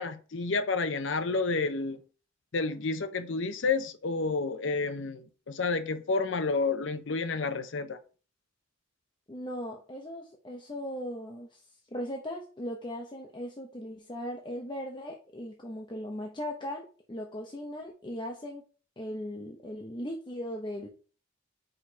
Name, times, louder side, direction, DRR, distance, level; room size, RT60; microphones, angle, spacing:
voice 1, 0.0-2.0 2.5-8.0, left 4 dB, 65° left, 0.7 m, -30 dB
voice 2, 9.3-11.6 11.9-18.6 19.0-20.9, equal, 25° left, 0.8 m, -38 dB
5.1 x 4.3 x 4.6 m
head